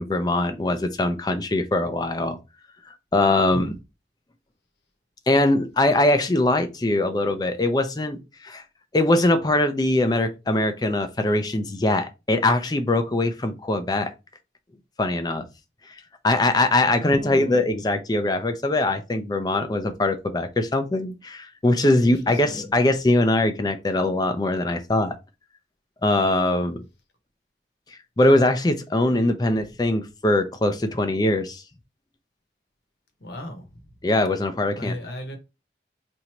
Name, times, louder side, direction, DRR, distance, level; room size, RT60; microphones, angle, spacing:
voice 1, 0.0-2.4 3.1-3.7 5.3-8.6 8.9-14.1 15.0-15.5 15.9-16.0 16.2-25.2 26.0-26.8 28.2-31.6 34.0-34.9, left 2 dB, 20° left, 0.4 m, -22 dB
voice 2, 16.9-17.6 22.0-22.1 22.4-22.6 33.2-33.8 34.7-35.4, equal, 65° left, 1.0 m, -35 dB
2.9 x 2.6 x 4.3 m
head